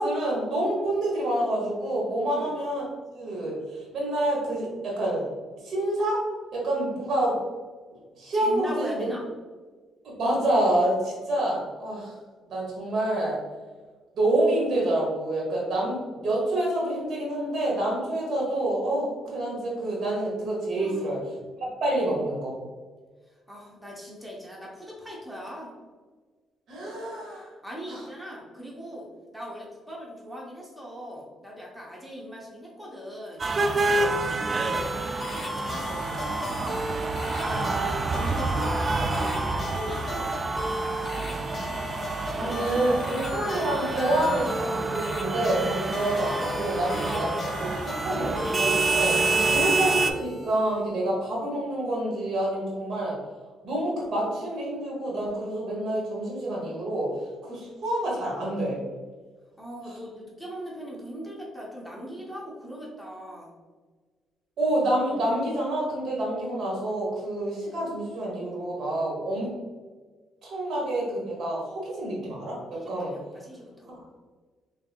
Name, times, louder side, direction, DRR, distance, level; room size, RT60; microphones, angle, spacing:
voice 1, 0.0-2.8 3.1-5.3 5.6-6.2 6.5-7.4 8.2-9.1 10.0-12.1 12.5-13.4 14.1-21.2 21.8-22.6 26.7-27.5 27.9-28.0 33.9-34.2 42.3-49.1 49.5-53.2 53.6-57.1 57.4-58.8 64.6-69.5 70.4-72.6 72.9-73.1 73.9-74.0, right 1 dB, 65° right, -4 dB, 1.4 m, -27 dB
voice 2, 8.3-9.2 20.8-21.1 23.5-25.7 27.6-29.1 29.3-33.5 34.3-36.1 37.3-40.3 49.4-49.7 59.6-63.5 72.7-73.9, equal, 5° right, -4 dB, 1.0 m, -39 dB
sound 1, 33.4-50.1, right 3 dB, 35° right, 0.3 m, -28 dB
sound 2, 34.7-50.9, equal, 30° left, 1.1 m, -35 dB
3.5 x 3.4 x 2.4 m, 1.4 s
cardioid pair, 90°, 0 cm